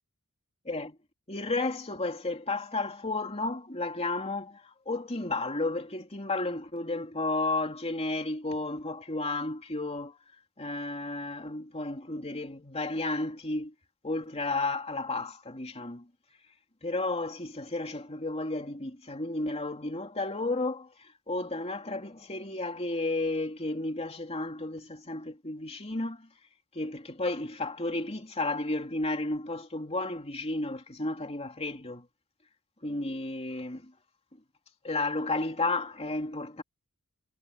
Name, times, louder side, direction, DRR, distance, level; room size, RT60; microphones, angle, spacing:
voice 1, 0.7-1.0 1.3-10.2 10.6-13.7 14.0-16.1 16.8-26.3 26.7-32.1 32.8-33.9 34.8-36.6, left 2 dB, 30° left, 3.1 m, -32 dB
head